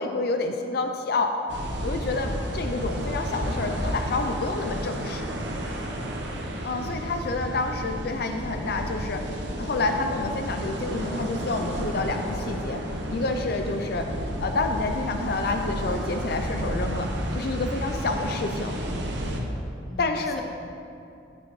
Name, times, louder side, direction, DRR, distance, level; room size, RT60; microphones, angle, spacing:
voice 1, 0.0-1.3 1.8-5.3 6.6-9.2 9.6-12.8 13.1-14.1 14.4-18.8 20.0-20.4, left 3 dB, 60° left, 5 dB, 0.5 m, -28 dB
sound 1, 1.5-19.4, right 1 dB, 75° right, 1.0 m, -31 dB
voice 2, 6.3-6.7 19.8-20.4, equal, ahead, -3 dB, 1.1 m, -42 dB
9.3 x 9.1 x 3.1 m, 2.7 s
head